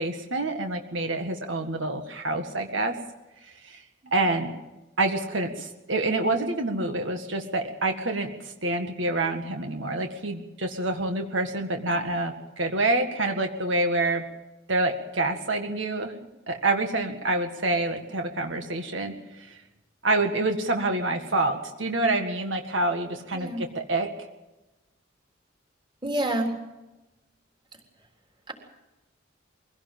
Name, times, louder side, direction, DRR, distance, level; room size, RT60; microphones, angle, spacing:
voice 1, 0.0-2.9 3.4-3.8 4.1-4.5 5.0-14.2 14.7-16.1 16.5-19.6 20.0-24.1, right 2 dB, 75° right, 5 dB, 1.9 m, -27 dB
voice 2, 26.0-26.5 28.5-28.6, right 1 dB, 25° right, 2 dB, 3.8 m, -27 dB
23.5 x 17.0 x 7.6 m, 1.0 s
head